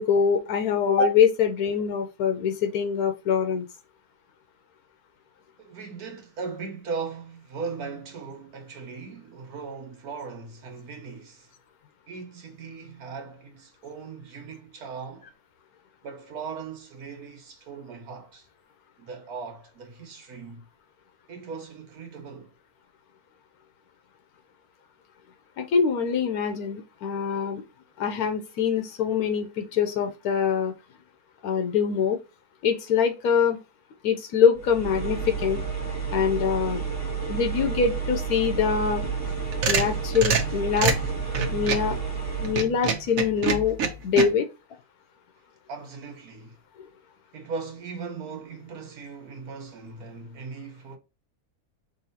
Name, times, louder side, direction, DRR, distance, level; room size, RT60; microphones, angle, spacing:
voice 1, 0.0-3.6 25.6-27.6 28.0-30.7 31.4-32.2 32.6-33.6 34.0-35.6 36.1-36.8 37.3-39.1 39.7-40.9 41.5-42.0 42.4-43.8 44.0-44.4, left 6 dB, 80° left, 1.1 m, -24 dB
voice 2, 5.6-11.5 12.1-15.3 16.0-18.5 19.0-20.7 21.3-22.5 45.7-46.6 47.3-51.0, right 5 dB, 90° right, 1.6 m, -38 dB
sound 1, 34.6-42.7, right 5 dB, 10° left, 1.4 m, -30 dB
sound 2, 39.2-41.9 42.4-44.3, right 5 dB, 65° right, 1.2 m, -26 dB
4.8 x 3.1 x 2.8 m
omnidirectional pair, 1.6 m